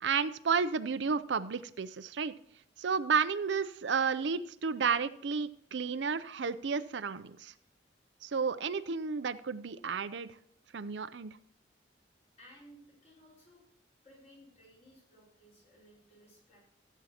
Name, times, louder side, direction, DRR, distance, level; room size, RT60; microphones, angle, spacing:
voice 1, 0.0-2.3 2.8-7.5 8.2-10.3 10.7-11.4, right 5 dB, 70° right, 13 dB, 0.5 m, -32 dB
voice 2, 12.4-13.6 14.0-16.6, equal, 35° left, -3 dB, 5.1 m, -58 dB
15.5 x 8.2 x 2.9 m, 0.68 s
head